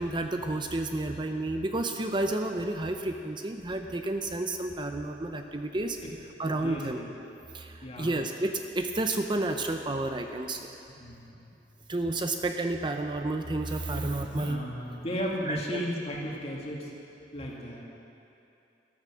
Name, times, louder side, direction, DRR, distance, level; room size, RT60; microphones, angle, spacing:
voice 1, 0.0-6.0 6.4-7.0 7.5-7.7 8.0-10.6 11.9-14.6 15.5-15.8, right 2 dB, 25° right, 5 dB, 0.6 m, -31 dB
voice 2, 6.6-7.1 7.8-8.1 11.0-11.5 13.9-14.0 14.3-16.9 17.3-17.8, equal, 35° left, -2 dB, 2.4 m, -35 dB
14.0 x 13.0 x 6.3 m, 2.8 s
head